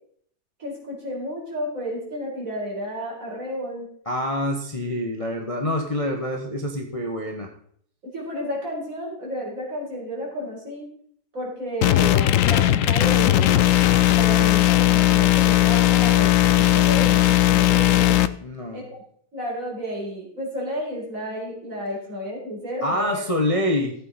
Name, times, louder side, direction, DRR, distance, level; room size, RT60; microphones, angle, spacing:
voice 1, 0.6-3.9 8.0-10.9 11.3-13.7 14.0-16.3 16.6-18.3 18.7-18.8 19.3-23.2, equal, 45° right, -3 dB, 4.9 m, -31 dB
voice 2, 4.1-7.5 18.4-18.8 22.8-23.9, left 1 dB, 25° left, 1 dB, 1.0 m, -26 dB
sound 1, 11.8-18.3, left 13 dB, 80° left, 0.7 m, -17 dB
15.0 x 8.4 x 4.2 m, 0.63 s
omnidirectional pair, 1.9 m